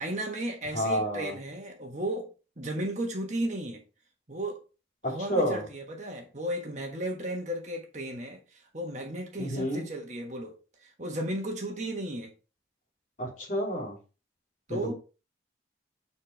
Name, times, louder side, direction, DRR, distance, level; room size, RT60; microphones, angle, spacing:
voice 1, 0.0-2.3 2.6-3.8 4.3-4.6 5.0-12.3 14.7-14.9, right 1 dB, 40° right, 1.5 m, -34 dB
voice 2, 0.7-1.3 5.0-5.7 9.4-9.9 13.2-13.9 14.7-14.9, equal, 45° left, 2.9 m, -29 dB
8.3 x 4.3 x 3.4 m
head